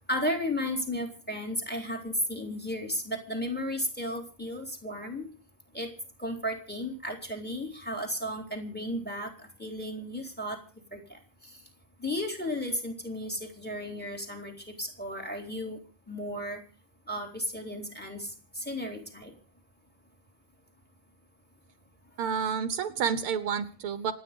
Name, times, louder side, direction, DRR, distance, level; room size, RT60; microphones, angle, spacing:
voice 1, 0.1-5.3 5.7-5.9 6.2-9.3 9.6-10.6 10.9-11.2 12.0-15.8 16.1-16.6 17.1-19.3, left 1 dB, 5° left, 3 dB, 3.8 m, -34 dB
voice 2, 22.2-24.1, right 7 dB, 80° right, 11 dB, 1.9 m, -29 dB
27.0 x 9.8 x 5.3 m, 0.38 s
omnidirectional pair, 2.4 m